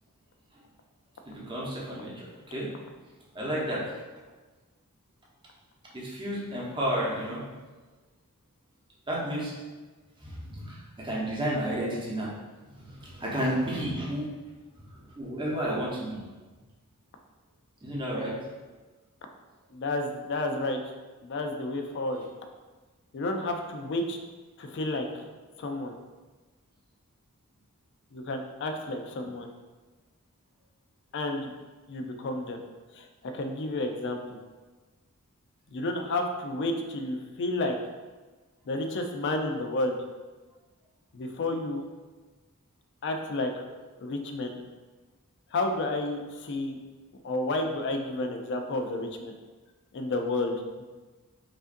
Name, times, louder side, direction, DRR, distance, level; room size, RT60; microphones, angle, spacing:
voice 1, 1.2-2.7 3.3-3.9 5.9-7.4 9.1-9.6 10.2-12.3 12.6-14.3 14.7-16.2 17.8-18.5, right 1 dB, 20° right, -5 dB, 0.9 m, -32 dB
voice 2, 19.7-20.8 21.2-22.2 23.1-24.2 24.6-25.3 25.6-26.0 28.1-29.5 31.1-31.5 31.9-32.6 32.9-33.1 33.3-34.2 35.7-37.8 38.7-39.9 41.1-41.8 43.0-43.5 44.0-44.6 45.5-46.8 47.2-49.3 49.9-50.9, left 2 dB, 55° left, 4 dB, 0.4 m, -31 dB
4.9 x 2.5 x 2.6 m, 1.3 s
head